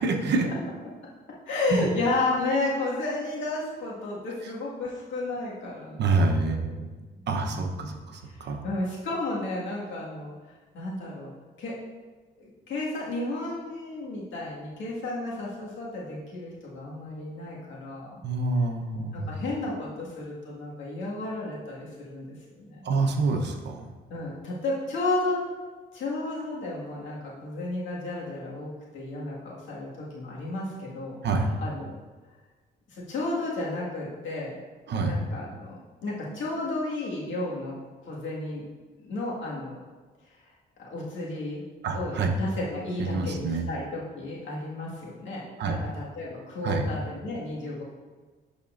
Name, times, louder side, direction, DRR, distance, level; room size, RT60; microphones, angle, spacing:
voice 1, 0.0-0.5 1.7-1.9 6.0-6.9 7.3-8.6 18.2-19.3 22.8-23.8 31.2-31.5 34.9-35.2 41.8-42.3 43.0-43.7 45.6-45.8 46.6-46.9, right 3 dB, 60° right, 3 dB, 0.9 m, -26 dB
voice 2, 1.5-6.0 6.3-6.6 7.2-7.9 8.6-10.3 10.7-11.3 11.6-11.8 12.4-18.2 19.1-22.3 22.6-22.8 24.1-25.4 25.9-31.2 31.6-32.0 32.9-34.5 35.0-37.8 38.1-38.6 39.0-39.8 40.8-41.6 41.9-47.8, left 2 dB, 70° left, -5 dB, 1.9 m, -32 dB
10.5 x 4.3 x 2.5 m, 1.3 s
cardioid pair, 90°, 20 cm